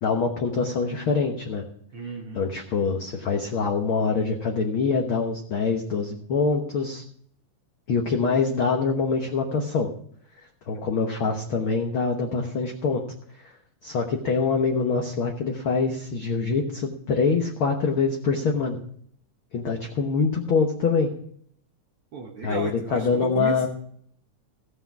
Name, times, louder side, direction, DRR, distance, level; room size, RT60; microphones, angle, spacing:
voice 1, 0.0-1.6 2.3-7.0 7.9-9.9 10.7-13.0 13.4-13.5 13.8-18.8 19.5-21.1 22.4-23.7, left 4 dB, 60° left, 2 dB, 1.4 m, -24 dB
voice 2, 1.9-2.4 10.7-10.8 22.1-23.7, right 5 dB, 65° right, 2 dB, 1.3 m, -34 dB
15.0 x 7.8 x 5.9 m, 0.64 s
omnidirectional pair, 3.8 m